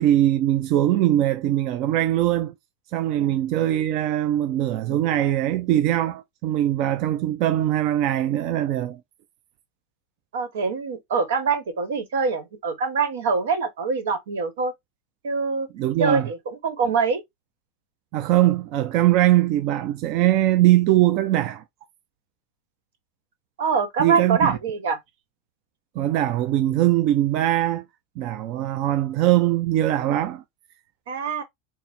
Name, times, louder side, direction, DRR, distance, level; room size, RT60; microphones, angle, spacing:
voice 1, 0.0-2.5 2.9-9.0 15.7-16.3 18.1-21.6 24.0-24.6 26.0-27.8 28.2-30.4, right 13 dB, 50° right, 0.4 m, -21 dB
voice 2, 10.3-14.7 15.2-15.7 16.0-17.2 23.6-25.0 31.1-31.4, right 5 dB, 90° right, 1.2 m, -24 dB
4.0 x 2.1 x 4.2 m
supercardioid pair, 140°, 0 cm